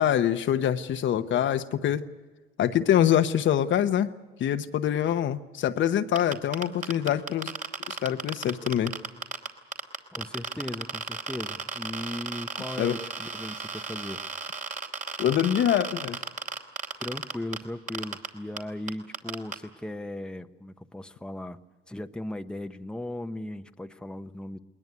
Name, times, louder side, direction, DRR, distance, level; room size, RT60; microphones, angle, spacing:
voice 1, 0.0-2.1 2.6-4.1 4.4-7.5 7.9-8.9 12.8-13.0 15.2-16.2, left 10 dB, 70° left, 9 dB, 1.1 m, -25 dB
sound 1, 6.2-9.5 9.7-17.6 17.9-18.3 18.6-18.7 18.9-19.5, right 4 dB, 40° right, 2.9 m, -34 dB
voice 2, 10.1-14.2 17.0-21.6 21.9-24.6, left 1 dB, 5° left, 8 dB, 0.9 m, -37 dB
21.0 x 20.0 x 9.5 m, 1.3 s
cardioid pair, 90°, 20 cm